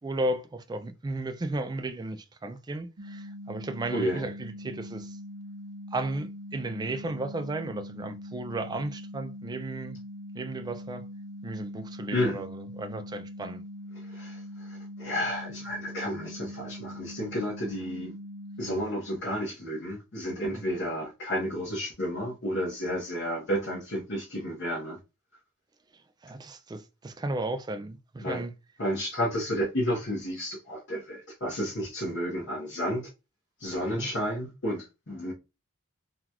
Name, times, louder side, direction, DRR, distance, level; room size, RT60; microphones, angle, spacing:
voice 1, 0.0-5.2 5.9-10.0 10.3-11.0 11.4-13.6 20.5-20.6 26.2-28.5 33.9-34.1, right 2 dB, 20° right, 0.3 m, -34 dB
sound 1, 3.0-18.8, left 1 dB, 55° right, 0.6 m, -42 dB
voice 2, 3.9-4.3 12.1-12.4 14.1-18.1 18.6-25.0 28.2-28.4 28.8-33.1 33.6-35.3, equal, 55° left, 1.1 m, -31 dB
3.8 x 2.3 x 2.9 m
head